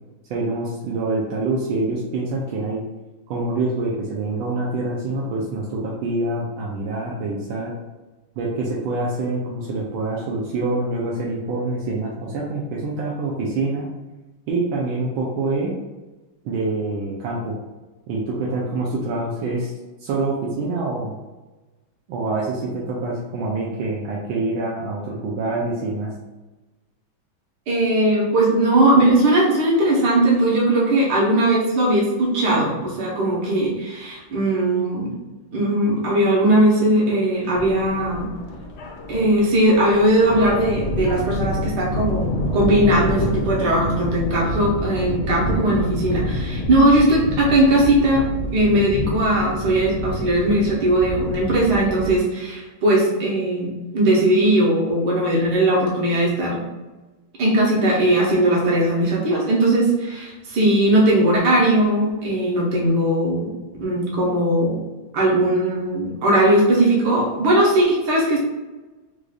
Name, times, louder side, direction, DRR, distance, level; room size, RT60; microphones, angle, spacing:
voice 1, 0.3-2.8 3.3-7.7 8.4-13.9 14.5-15.7 16.4-17.6 18.1-19.7 20.0-21.2 22.1-26.1, right 2 dB, 80° right, -4 dB, 1.4 m, -26 dB
voice 2, 27.7-35.1 35.5-38.3 39.1-56.6 57.4-63.5 63.8-64.8 65.1-68.4, right 1 dB, 60° right, -4 dB, 1.5 m, -19 dB
sound 1, 37.5-52.2, left 1 dB, 80° left, 1.4 m, -28 dB
4.7 x 2.5 x 2.4 m, 1.2 s
omnidirectional pair, 2.2 m